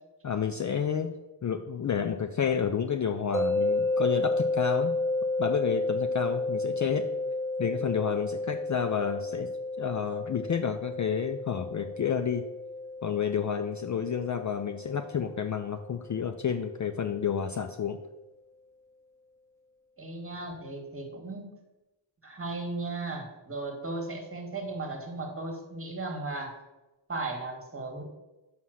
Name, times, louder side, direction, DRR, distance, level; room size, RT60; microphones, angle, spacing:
voice 1, 0.2-1.1 1.4-4.9 5.4-7.1 7.6-9.5 9.8-12.5 13.0-18.0, left 7 dB, 40° left, 7 dB, 0.4 m, -30 dB
sound 1, 3.3-16.4, left 2 dB, 5° left, 1.3 m, -32 dB
voice 2, 20.0-21.5 22.2-26.5 27.1-28.0, right 2 dB, 30° right, 2 dB, 1.6 m, -36 dB
5.7 x 5.7 x 6.3 m, 1.0 s
wide cardioid pair, 130°, 46 cm